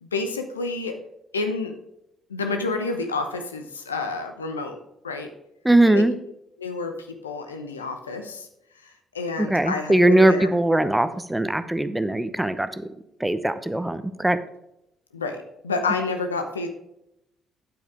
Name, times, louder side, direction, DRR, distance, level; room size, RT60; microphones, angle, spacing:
voice 1, 0.0-1.0 1.3-1.7 2.3-4.8 5.0-5.3 5.9-6.0 6.6-8.5 8.8-10.9 15.1-15.4 15.6-16.7, left 3 dB, 90° left, 6 dB, 0.8 m, -29 dB
voice 2, 5.6-6.1 9.4-12.8 13.2-14.4, right 1 dB, 10° right, 12 dB, 0.9 m, -20 dB
9.2 x 8.2 x 3.6 m, 0.83 s
figure-of-eight pair, 45°, 0 cm